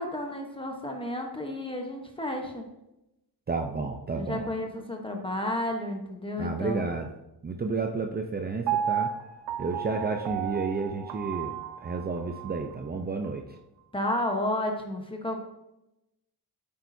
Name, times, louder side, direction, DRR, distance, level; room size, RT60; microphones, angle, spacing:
voice 1, 0.0-2.7 4.1-6.9 13.9-15.4, left 1 dB, 15° left, 2 dB, 1.0 m, -32 dB
voice 2, 3.5-4.5 6.4-7.1 7.4-9.1 9.6-13.4, right 4 dB, 25° right, 4 dB, 0.6 m, -31 dB
Piano, 8.7-12.8 13.2-13.3, right 9 dB, 80° right, 0.7 m, -33 dB
10.5 x 8.5 x 2.7 m, 0.91 s
cardioid pair, 125°, 40 cm